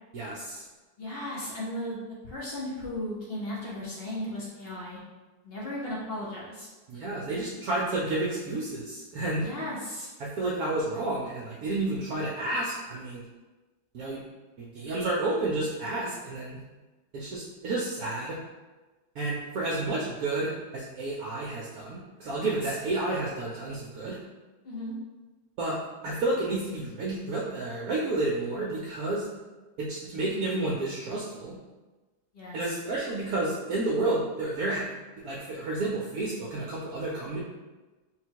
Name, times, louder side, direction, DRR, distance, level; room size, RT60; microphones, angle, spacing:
voice 1, 0.1-0.6 6.9-9.5 10.2-13.2 13.9-14.2 14.6-16.6 17.1-18.4 19.1-24.2 25.6-25.8 26.0-29.3 29.8-31.6 32.5-37.4, right 2 dB, 65° right, -5 dB, 1.0 m, -31 dB
voice 2, 1.0-5.0 5.4-6.7 9.4-10.1 22.4-22.8 24.6-24.9 32.3-32.8, left 1 dB, 50° left, -5 dB, 0.7 m, -36 dB
3.9 x 2.2 x 4.5 m, 1.2 s
omnidirectional pair, 1.9 m